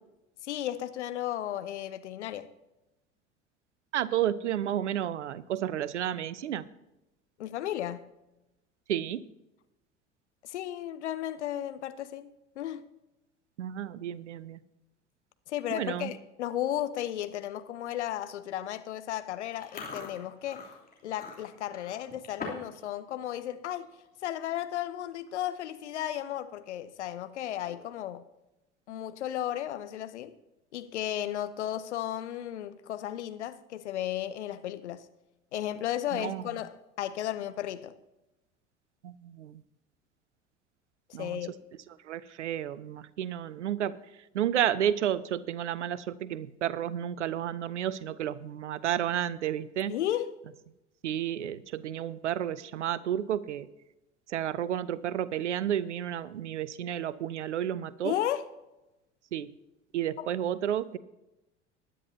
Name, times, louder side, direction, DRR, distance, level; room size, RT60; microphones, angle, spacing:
voice 1, 0.4-2.5 7.4-8.1 10.4-12.3 12.6-12.9 15.5-20.7 21.0-23.9 24.2-28.3 28.9-30.3 30.7-35.1 35.5-37.9 41.2-41.5 49.9-50.3 58.0-58.4 60.2-60.3, left 12 dB, 70° left, 0.8 m, -34 dB
voice 2, 3.9-6.6 8.9-9.2 13.6-14.6 15.7-16.1 36.1-36.4 39.0-39.6 41.1-41.4 42.1-44.0 44.3-49.9 51.0-53.7 54.3-58.1 59.3-59.5 59.9-61.0, right 10 dB, 75° right, 0.6 m, -31 dB
Chewing mastication, 19.5-22.8 23.1-23.4 23.8-24.1 24.8-24.9 25.1-25.5 25.9-26.0 27.4-28.0, left 4 dB, 25° left, 3.1 m, -43 dB
20.0 x 10.0 x 2.8 m
figure-of-eight pair, 70°, 36 cm